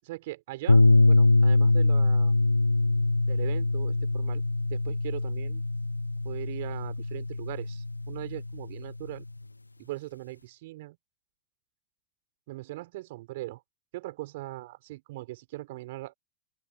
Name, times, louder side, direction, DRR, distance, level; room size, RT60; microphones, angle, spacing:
voice 1, 0.0-2.3 3.3-4.4 4.7-5.6 6.2-9.3 9.8-11.0 12.5-13.6 13.9-16.1, right 18 dB, 50° right, 6.1 m, -40 dB
sound 1, 0.7-9.1, left 2 dB, 85° left, 0.5 m, -23 dB
open air
figure-of-eight pair, 90°, 0 cm